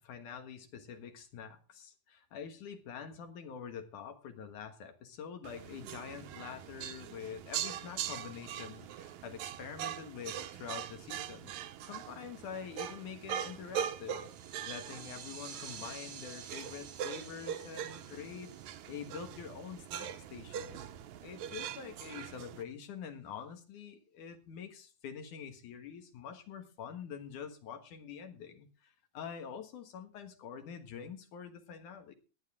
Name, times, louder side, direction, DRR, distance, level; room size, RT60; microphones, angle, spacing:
voice 1, 0.0-11.5 11.8-14.3 14.7-18.5 18.9-20.8 21.2-32.1, left 7 dB, 70° left, 6 dB, 2.9 m, -46 dB
sound 1, 5.4-22.6, right 9 dB, 70° right, 2.1 m, -42 dB
sound 2, 14.0-20.1, right 7 dB, 50° right, 1.7 m, -51 dB
20.5 x 9.1 x 3.6 m, 0.33 s
omnidirectional pair, 3.7 m